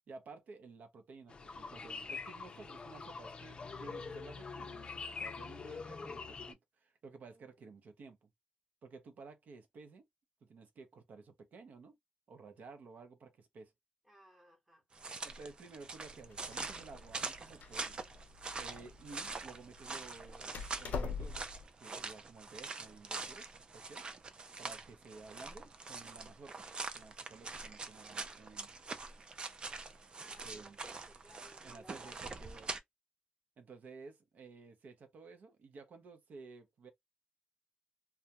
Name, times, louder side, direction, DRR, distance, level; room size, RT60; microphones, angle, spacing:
voice 1, 0.1-8.3 8.8-10.0 10.4-12.0 12.3-13.7 15.2-18.0 18.5-21.5 21.8-24.0 24.6-26.6 26.9-28.7 30.4-30.8 31.6-32.7 33.6-36.9, right 4 dB, 70° right, 0.6 m, -54 dB
sound 1, 1.3-6.5, left 4 dB, 35° left, 0.4 m, -44 dB
voice 2, 14.0-14.8 30.2-32.2, equal, 5° right, 1.0 m, -61 dB
sound 2, 14.9-32.8, right 3 dB, 35° right, 0.4 m, -44 dB
Door, 16.0-21.6, left 5 dB, 90° left, 0.5 m, -45 dB
2.3 x 2.1 x 2.8 m
wide cardioid pair, 175°, 3 cm